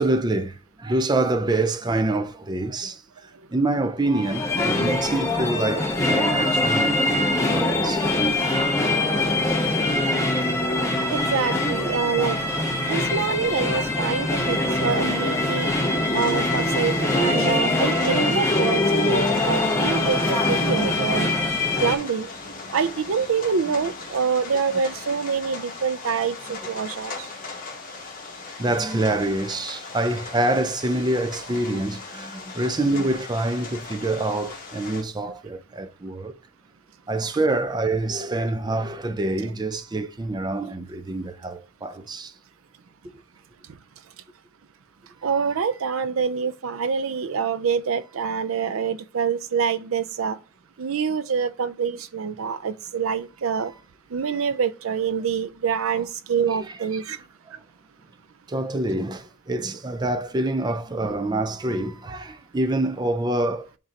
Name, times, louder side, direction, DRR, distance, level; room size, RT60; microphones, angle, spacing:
voice 1, 0.0-3.0 3.5-8.4 12.3-12.7 14.6-16.0 21.4-21.8 26.5-26.6 28.6-36.3 37.1-42.3 45.3-45.4 53.6-53.8 55.9-56.0 56.5-56.7 57.1-57.2 58.5-63.7, right 2 dB, 20° right, 0.4 m, -26 dB
sound 1, 4.2-22.0, left 2 dB, 15° left, 1.0 m, -23 dB
voice 2, 11.1-12.4 12.9-15.7 16.1-21.3 21.8-22.3 22.7-27.1 45.2-50.4 50.8-53.7 54.1-57.2, right 6 dB, 75° right, 0.5 m, -26 dB
sound 2, 16.1-35.0, left 3 dB, 40° left, 1.6 m, -38 dB
10.5 x 3.7 x 2.9 m
head